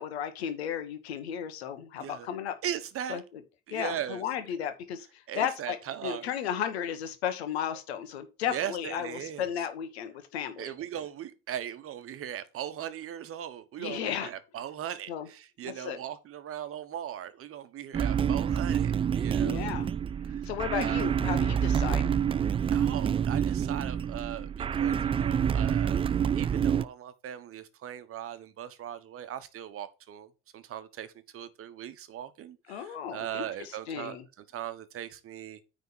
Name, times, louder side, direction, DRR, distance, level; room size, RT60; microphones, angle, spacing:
voice 1, 0.0-2.5 3.1-3.4 3.7-5.8 6.0-10.7 13.8-14.3 15.1-15.3 15.6-16.0 19.4-19.9 20.4-22.1 32.7-34.2, left 9 dB, 80° left, 1.3 m, -34 dB
voice 2, 2.6-3.2 3.7-4.2 5.3-6.3 8.5-9.5 10.6-19.7 20.7-21.1 22.7-35.6, right 10 dB, 45° right, 1.1 m, -39 dB
sound 1, 17.9-26.8, right 8 dB, 20° right, 0.3 m, -27 dB
9.4 x 3.8 x 5.5 m
hypercardioid pair, 65°, 32 cm